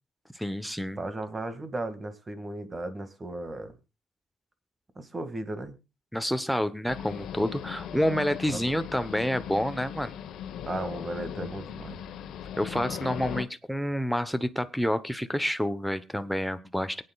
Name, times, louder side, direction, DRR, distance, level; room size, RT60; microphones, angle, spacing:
voice 1, 0.3-1.0 6.1-10.1 12.6-17.0, equal, ahead, 10 dB, 0.9 m, -28 dB
voice 2, 1.0-3.8 5.0-5.7 8.5-8.7 10.7-12.0, right 2 dB, 25° right, 10 dB, 2.0 m, -35 dB
sound 1, 6.9-13.4, left 9 dB, 80° left, 1.0 m, -38 dB
23.0 x 8.9 x 2.3 m, 0.26 s
cardioid pair, 90°, 0 cm